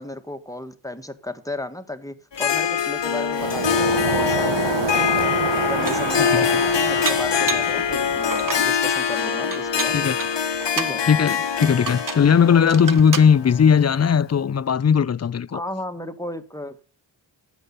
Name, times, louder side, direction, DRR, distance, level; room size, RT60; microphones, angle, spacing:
voice 1, 0.0-5.3 5.6-10.0 10.7-11.0 15.5-16.9, left 1 dB, 5° left, 1.8 m, -34 dB
Harp, 2.3-14.2, left 7 dB, 65° left, 1.2 m, -24 dB
Waves surf, 3.4-8.8, right 7 dB, 75° right, 1.1 m, -28 dB
Dishes pots and pans, 5.0-5.1 5.6-6.2 7.0-7.8 8.2-8.7 9.5-11.0 11.6-12.3 12.7-13.3, right 6 dB, 45° right, 1.0 m, -31 dB
voice 2, 11.1-15.6, left 7 dB, 35° left, 0.5 m, -18 dB
12.5 x 8.4 x 5.6 m
cardioid pair, 45°, 46 cm